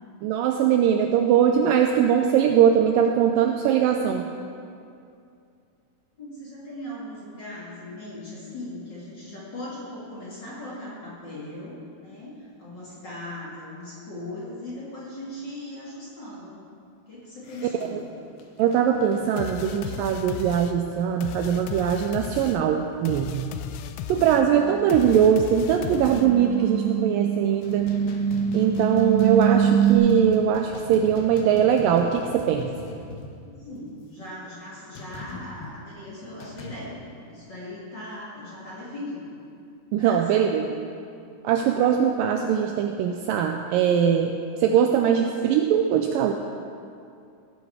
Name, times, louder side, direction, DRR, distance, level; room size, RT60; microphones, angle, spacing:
voice 1, 0.2-4.2 17.9-18.0 18.6-23.5 24.1-28.0 28.5-32.7 39.9-40.8 41.4-46.3, right 8 dB, 90° right, 4 dB, 2.0 m, -21 dB
voice 2, 6.2-16.7 17.1-18.1 33.4-39.4 39.9-40.7, left 1 dB, 35° left, -7 dB, 2.2 m, -39 dB
sound 1, 17.4-22.5 22.8-22.9 23.3-23.7 24.1-24.2 24.6-24.7 24.9-26.0 26.6-27.1 27.4-33.8 34.9-35.7 36.4-36.9, left 3 dB, 65° left, 2.5 m, -42 dB
sound 2, 19.4-26.6, left 10 dB, 80° left, 2.3 m, -36 dB
sound 3, 24.5-24.7 25.7-30.0, right 8 dB, 60° right, 1.7 m, -24 dB
16.0 x 8.8 x 4.8 m, 2.5 s
omnidirectional pair, 4.5 m